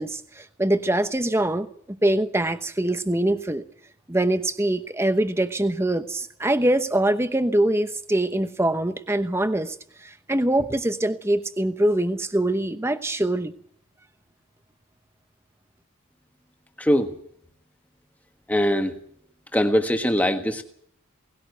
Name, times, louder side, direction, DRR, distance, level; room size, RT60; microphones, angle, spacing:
voice 1, 0.0-3.6 4.1-13.5, right 1 dB, 10° right, 11 dB, 0.9 m, -24 dB
voice 2, 16.8-17.1 18.5-18.9 19.5-20.6, equal, 5° left, 6 dB, 1.4 m, -21 dB
19.0 x 17.0 x 8.0 m, 0.64 s
head